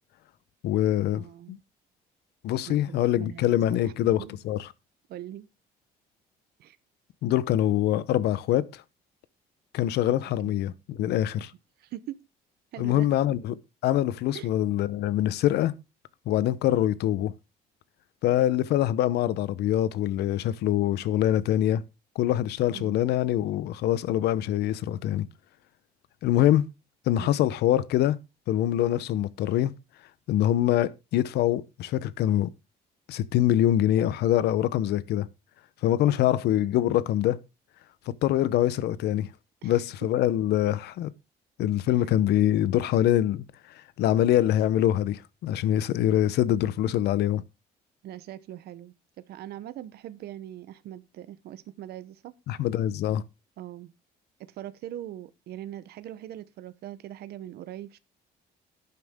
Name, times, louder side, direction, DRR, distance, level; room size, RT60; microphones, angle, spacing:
voice 1, 0.6-1.6 2.4-4.7 7.2-8.8 9.7-11.5 12.8-13.5 13.8-15.7 16.3-17.3 18.2-21.8 22.1-25.3 26.2-26.7 27.1-28.2 28.5-29.7 30.3-32.5 33.1-35.3 35.8-37.4 38.2-39.3 39.6-41.1 41.6-43.4 44.0-47.4 52.5-53.2, left 12 dB, 75° left, 0.9 m, -24 dB
voice 2, 1.1-1.6 2.6-3.9 4.2-4.4 5.1-5.5 6.6-6.8 10.4-10.5 11.4-11.5 11.8-12.3 12.7-13.2 14.3-14.5 22.7-23.0 27.2-27.5 36.0-36.5 39.6-39.8 42.0-42.1 48.0-52.3 53.6-53.9 54.4-58.0, right 12 dB, 70° right, 1.0 m, -42 dB
11.5 x 9.6 x 3.7 m
cardioid pair, 110°, 17 cm